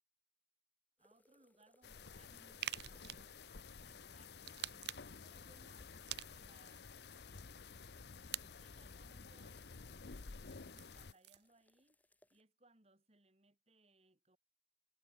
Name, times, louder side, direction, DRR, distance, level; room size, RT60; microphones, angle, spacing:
sound 1, 1.0-12.4, left 1 dB, 10° left, 5.9 m, -76 dB
voice 1, 1.0-3.4 3.8-6.9 8.4-12.0 12.3-14.4, right 2 dB, 35° right, 3.0 m, -70 dB
sound 2, 1.8-11.1, left 4 dB, 70° left, 0.9 m, -53 dB
sound 3, 2.6-3.3 4.4-5.2 6.1-6.7 8.3-8.5 10.4-11.5, right 12 dB, 75° right, 0.9 m, -45 dB
head